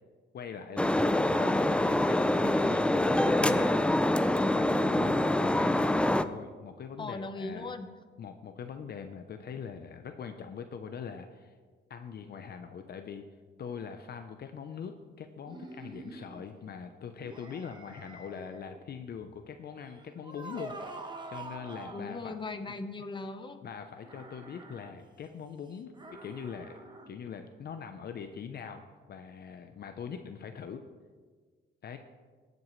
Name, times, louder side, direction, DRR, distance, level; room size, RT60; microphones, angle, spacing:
voice 1, 0.3-3.8 4.4-5.9 6.2-7.7 8.2-11.5 11.9-13.2 13.6-22.3 23.6-26.8 27.1-30.8 31.8-32.0, left 6 dB, 55° left, 7 dB, 0.7 m, -42 dB
sound 1, 0.8-6.2, left 1 dB, 5° left, 0.4 m, -25 dB
voice 2, 7.0-7.9 21.9-23.6, left 3 dB, 25° left, 7 dB, 1.1 m, -38 dB
sound 2, 15.5-16.4 17.2-18.8 19.8-22.1 24.0-24.9 25.9-27.1, right 2 dB, 20° right, 1.3 m, -46 dB
19.5 x 7.9 x 3.2 m, 1.5 s
cardioid pair, 90°, 20 cm